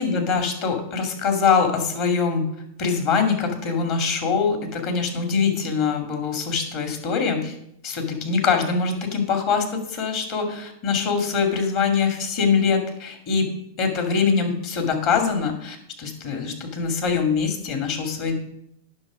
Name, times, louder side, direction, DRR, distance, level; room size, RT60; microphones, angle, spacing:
voice 1, 0.0-2.5 2.8-7.6 7.8-13.5 13.8-18.3, left 5 dB, 50° left, 4 dB, 2.4 m, -23 dB
9.6 x 6.2 x 5.0 m, 0.75 s
hypercardioid pair, 110°, 0 cm